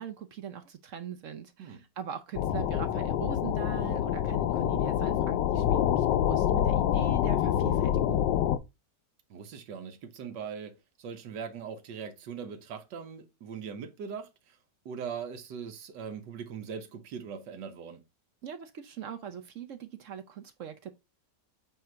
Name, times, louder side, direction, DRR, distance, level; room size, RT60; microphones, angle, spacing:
voice 1, 0.0-8.3 18.4-20.9, right 8 dB, 60° right, 0.8 m, -41 dB
sound 1, 2.4-8.6, left 10 dB, 85° left, 1.2 m, -26 dB
voice 2, 9.3-14.6 14.8-18.0, right 6 dB, 85° right, 1.6 m, -40 dB
7.6 x 2.8 x 4.4 m
omnidirectional pair, 1.9 m